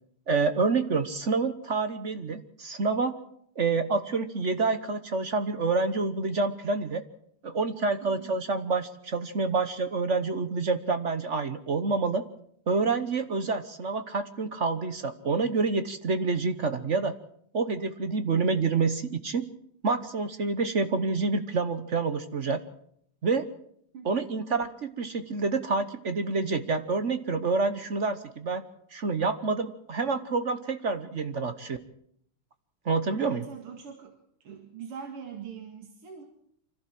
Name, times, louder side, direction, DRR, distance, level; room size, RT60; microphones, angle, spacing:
voice 1, 0.3-3.2 3.6-7.0 7.4-12.2 12.7-17.1 17.5-19.4 19.8-22.6 23.2-23.5 24.0-28.6 28.9-31.8 32.8-33.4, right 4 dB, 50° right, 10 dB, 0.9 m, -28 dB
voice 2, 8.0-8.3 23.9-24.2 33.2-34.2 34.4-36.2, right 6 dB, 90° right, 3 dB, 3.0 m, -42 dB
25.0 x 15.0 x 7.7 m, 0.69 s
omnidirectional pair, 2.4 m